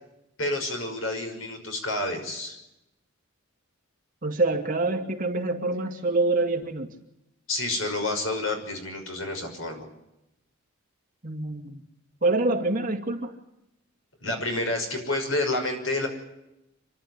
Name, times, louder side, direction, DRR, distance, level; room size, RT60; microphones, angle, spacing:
voice 1, 0.4-2.6 7.5-9.9 14.2-16.1, left 2 dB, 75° left, 4 dB, 5.9 m, -29 dB
voice 2, 4.2-6.9 11.2-11.8 12.2-13.3, right 2 dB, 40° right, 4 dB, 2.4 m, -26 dB
27.5 x 12.0 x 9.9 m, 0.89 s
head